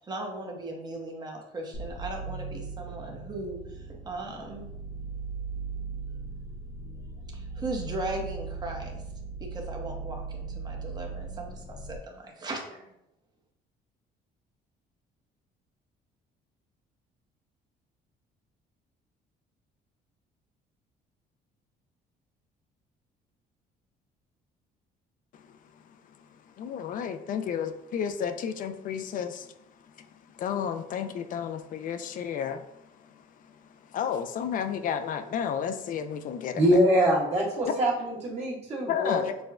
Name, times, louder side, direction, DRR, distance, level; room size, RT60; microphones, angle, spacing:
voice 1, 0.0-4.7 6.8-9.0 9.4-12.8, right 2 dB, 25° right, 1 dB, 0.9 m, -38 dB
sound 1, 1.7-12.0, right 4 dB, 90° left, 0.7 m, -38 dB
voice 2, 26.6-29.5 30.0-30.1 30.3-32.6 33.1-33.2 33.5-33.6 33.9-36.6 38.9-39.4, left 8 dB, 55° left, 9 dB, 0.4 m, -32 dB
voice 3, 36.5-39.3, equal, 40° right, -5 dB, 1.4 m, -24 dB
6.1 x 2.2 x 2.4 m, 0.83 s
cardioid pair, 110°, 17 cm